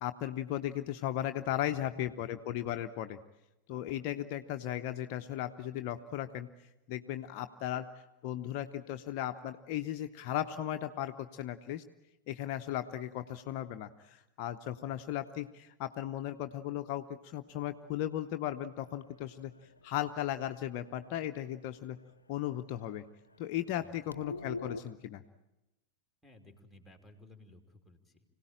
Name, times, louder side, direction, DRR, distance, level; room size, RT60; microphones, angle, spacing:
voice 1, 0.0-3.2 3.7-6.5 6.9-7.9 8.2-11.8 12.3-19.5 19.8-22.0 22.3-23.0 23.4-25.2, left 12 dB, 45° left, 7 dB, 0.7 m, -36 dB
sound 1, 18.8-22.1 22.4-22.6 22.9-23.0 23.3-24.8, left 3 dB, 80° left, 0.7 m, -47 dB
voice 2, 26.2-28.2, left 2 dB, ahead, 3 dB, 3.0 m, -57 dB
25.5 x 17.5 x 8.9 m, 0.98 s
figure-of-eight pair, 90°, 0 cm